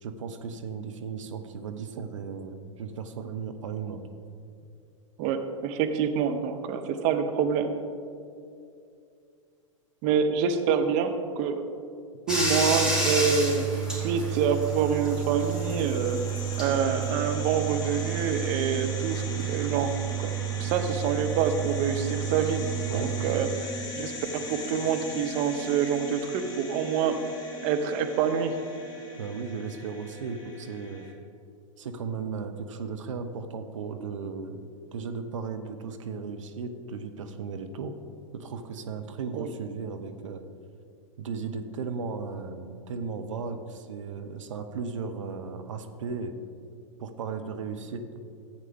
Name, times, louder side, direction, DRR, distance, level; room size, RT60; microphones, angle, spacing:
voice 1, 0.0-4.0 22.9-23.1 29.2-31.1 31.8-37.9 38.3-40.4 41.2-46.3 47.0-48.2, right 5 dB, 70° right, 7 dB, 0.9 m, -36 dB
voice 2, 5.2-7.7 10.0-11.6 12.3-16.2 16.6-19.9 20.2-20.3 20.6-22.6 22.9-23.7 24.0-27.2 27.6-28.5 39.3-39.5, right 6 dB, 45° right, 7 dB, 0.9 m, -27 dB
Bathtub (filling or washing), 12.3-23.4, right 6 dB, 5° right, 2.6 m, -30 dB
sound 1, 14.5-31.1, left 2 dB, 20° left, 1.9 m, -40 dB
14.5 x 8.2 x 3.6 m, 2.5 s
figure-of-eight pair, 95°, 17 cm